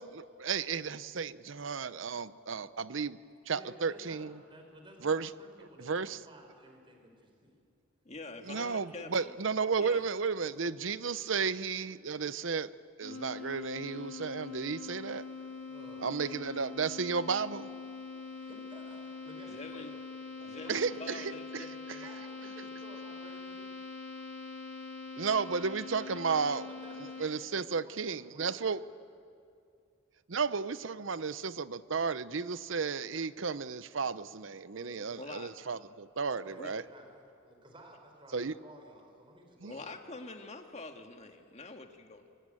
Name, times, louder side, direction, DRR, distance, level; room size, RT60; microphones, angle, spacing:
voice 1, 0.0-3.2 3.5-4.4 5.0-5.3 5.8-6.2 8.5-12.7 13.0-15.3 16.0-17.7 20.7-21.6 25.2-26.6 27.2-28.8 30.3-36.8 38.3-38.5 39.6-39.7, right 5 dB, 70° right, 15 dB, 0.7 m, -33 dB
voice 2, 3.5-7.6 15.6-16.2 18.3-19.9 20.5-21.4 21.9-23.7 26.2-28.8 34.7-35.3 36.3-40.2, right 1 dB, 25° right, 3 dB, 4.6 m, -54 dB
voice 3, 8.1-9.3 9.8-10.0 19.5-19.9 20.4-21.7 35.2-35.5 36.6-36.7 39.7-42.3, left 3 dB, 35° left, 5 dB, 1.9 m, -45 dB
sound 1, 13.0-27.2, left 4 dB, 60° left, 4.6 m, -44 dB
25.0 x 24.0 x 9.0 m, 2.4 s
head